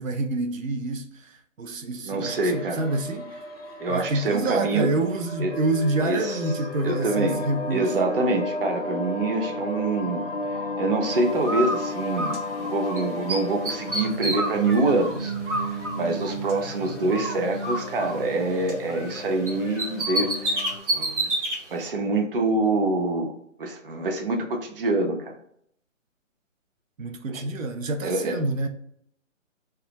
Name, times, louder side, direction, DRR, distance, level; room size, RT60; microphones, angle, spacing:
voice 1, 0.0-1.3 1.6-3.4 3.9-7.9 27.0-28.7, right 2 dB, 90° right, 0.6 m, -27 dB
voice 2, 2.0-3.0 3.8-4.9 5.4-5.5 6.0-6.4 6.8-7.4 7.7-10.2 10.8-15.3 15.6-20.6 20.9-21.3 21.7-23.3 23.6-25.3 27.3-27.4 28.0-28.4, right 2 dB, 45° right, 0.5 m, -26 dB
sound 1, 2.2-20.8, left 1 dB, 50° left, 0.4 m, -34 dB
Bird, 11.4-13.0 13.3-16.7 17.1-19.2 19.5-21.6, right 1 dB, 65° right, 1.1 m, -29 dB
2.3 x 2.2 x 2.8 m
hypercardioid pair, 160°, 39 cm